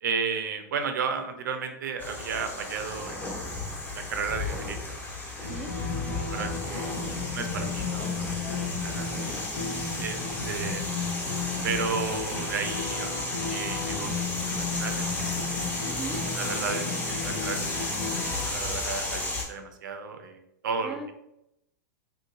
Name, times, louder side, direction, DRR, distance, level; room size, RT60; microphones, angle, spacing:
voice 1, 0.0-3.4 3.9-5.0 5.4-5.5 6.3-6.9 7.3-9.1 10.0-10.9 11.6-15.1 16.4-21.0, right 5 dB, 75° right, 7 dB, 0.6 m, -34 dB
sound 1, 2.0-19.4, left 2 dB, 20° left, 1.1 m, -34 dB
sound 2, 5.4-18.6, left 4 dB, 70° left, 1.0 m, -34 dB
voice 2, 15.8-16.2 20.8-21.1, right 2 dB, 5° right, 2 dB, 0.5 m, -39 dB
3.6 x 2.9 x 2.6 m, 0.83 s
hypercardioid pair, 115°, 10 cm